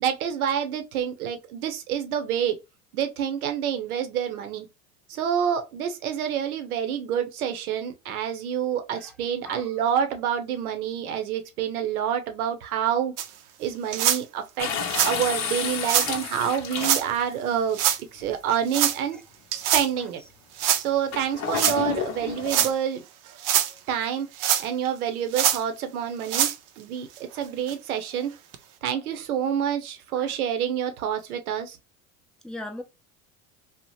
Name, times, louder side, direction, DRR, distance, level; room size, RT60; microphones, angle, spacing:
voice 1, 0.0-2.6 2.9-4.7 5.1-13.1 13.6-14.7 15.1-17.8 18.1-19.2 19.5-20.2 20.8-23.0 23.9-24.3 24.6-26.5 26.8-28.3 28.8-31.8, right 9 dB, 85° right, 0.7 m, -27 dB
sound 1, 13.2-13.3 13.9-14.2 14.9-15.1 15.8-16.1 16.8-17.0 17.7-18.0 18.7-19.0 19.5-19.9 20.6-20.8 21.5-21.8 22.4-22.7 23.3-23.7 24.4-24.9 25.3-25.6 26.2-26.6 27.2-27.3 27.7-27.8 28.5-28.6, right 10 dB, 50° right, 0.5 m, -23 dB
sound 2, 14.6-17.3 18.2-18.3 21.1-22.7, left 6 dB, 40° left, 0.8 m, -30 dB
voice 2, 32.4-32.8, left 2 dB, ahead, 0.6 m, -40 dB
2.8 x 2.0 x 3.0 m
hypercardioid pair, 95°, 42 cm